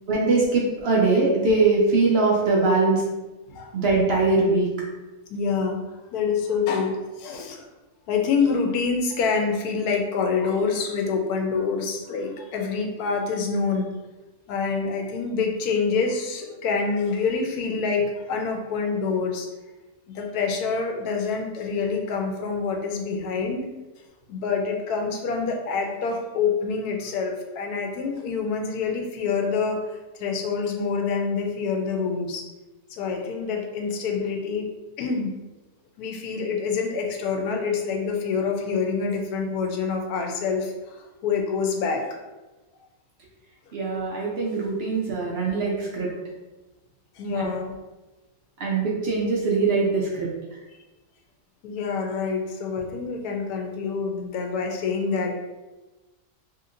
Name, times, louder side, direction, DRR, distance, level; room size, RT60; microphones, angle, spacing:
voice 1, 0.1-3.0 3.7-4.7 43.7-46.1 47.3-47.5 48.6-50.3, right 3 dB, 65° right, -3 dB, 0.6 m, -22 dB
voice 2, 5.3-5.8 6.1-7.7 8.1-13.9 14.5-19.5 20.1-23.7 24.3-29.8 30.2-32.4 32.9-34.7 35.0-35.3 36.0-42.0 47.2-47.8 51.6-55.4, left 5 dB, 90° left, 3 dB, 1.1 m, -26 dB
2.9 x 2.7 x 2.5 m, 1.1 s
omnidirectional pair, 1.6 m